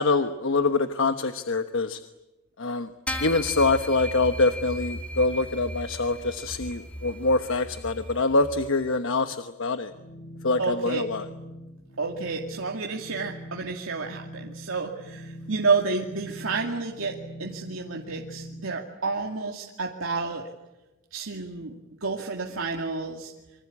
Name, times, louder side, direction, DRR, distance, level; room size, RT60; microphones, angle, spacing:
voice 1, 0.0-2.0 2.6-2.9 3.2-9.9 10.4-11.2, left 3 dB, 70° left, 9 dB, 1.1 m, -25 dB
sound 1, 3.1-8.7, equal, 5° left, 2.3 m, -36 dB
sound 2, 9.9-18.7, equal, 50° left, 2.7 m, -43 dB
voice 2, 10.6-11.0 12.0-20.4 21.1-23.3, right 4 dB, 90° right, 0 dB, 2.3 m, -30 dB
27.5 x 25.0 x 8.5 m, 1.0 s
head